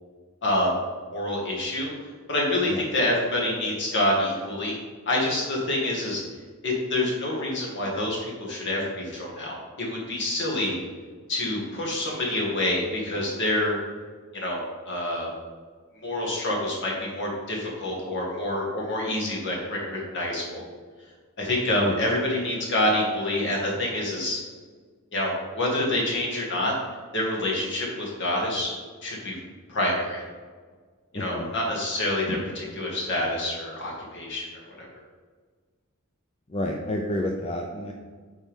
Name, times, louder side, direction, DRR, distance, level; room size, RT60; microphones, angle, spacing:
voice 1, 0.4-0.7 1.1-1.9 2.3-4.8 5.1-6.2 6.6-10.8 11.3-13.8 14.3-15.3 16.0-20.6 21.4-24.4 25.1-26.7 27.1-28.7 29.0-29.4 29.7-30.2 31.1-34.9, left 1 dB, 55° left, -3 dB, 2.2 m, -27 dB
voice 2, 31.1-31.5 36.5-37.9, left 1 dB, 30° left, 1 dB, 0.5 m, -29 dB
8.2 x 4.7 x 3.7 m, 1.5 s
head